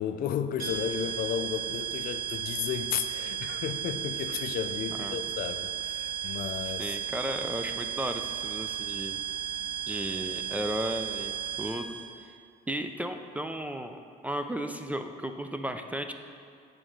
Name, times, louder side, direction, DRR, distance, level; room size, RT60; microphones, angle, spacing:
voice 1, 0.0-7.0, left 8 dB, 60° left, 10 dB, 0.4 m, -33 dB
sound 1, 0.6-12.0, right 10 dB, 60° right, 1.8 m, -34 dB
voice 2, 6.8-9.2 9.9-11.3 11.6-12.0 12.7-16.1, right 1 dB, 10° right, 6 dB, 0.3 m, -34 dB
7.1 x 3.8 x 6.2 m, 2.4 s
cardioid pair, 110°, 17 cm